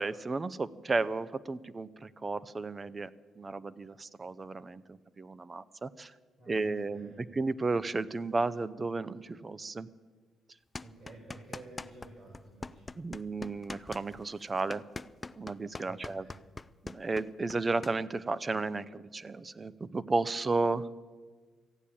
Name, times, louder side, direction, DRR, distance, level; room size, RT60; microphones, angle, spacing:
voice 1, 0.0-3.1 3.4-6.1 6.5-9.9 13.0-14.8 15.3-16.3 16.8-20.9, right 3 dB, 30° right, 17 dB, 0.5 m, -33 dB
voice 2, 6.4-7.2 10.8-12.9 15.8-16.4, right 2 dB, 60° right, -2 dB, 5.6 m, -51 dB
sound 1, 10.7-12.1 12.3-17.9, left 3 dB, 20° left, 0.4 m, -42 dB
15.0 x 8.7 x 8.4 m, 1.5 s
cardioid pair, 90°, 0 cm